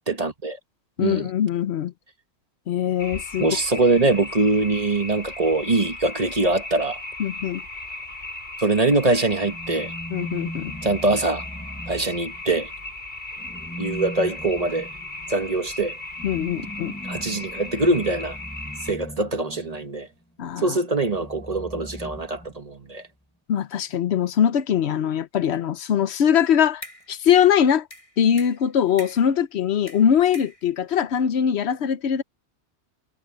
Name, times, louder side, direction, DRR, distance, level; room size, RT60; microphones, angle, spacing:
voice 1, 0.1-0.6 1.0-1.3 3.4-7.0 8.6-9.9 10.8-11.4 11.9-12.7 13.8-14.9 15.3-15.9 17.0-18.4 18.8-20.1 20.6-23.1, right 2 dB, 35° right, 1.4 m, -23 dB
voice 2, 1.0-1.9 2.7-3.5 7.2-7.6 10.1-10.7 16.2-16.9 20.4-20.8 23.5-26.8 27.1-27.9 28.2-32.2, left 9 dB, 75° left, 1.0 m, -22 dB
sound 1, 3.0-18.9, left 2 dB, 55° left, 4.4 m, -37 dB
sound 2, 9.4-12.7 13.4-20.0 21.0-22.9, equal, 10° left, 7.9 m, -39 dB
sound 3, 26.4-27.2 27.9-29.4 29.9-31.0, left 1 dB, 30° left, 6.6 m, -43 dB
omnidirectional pair, 1.1 m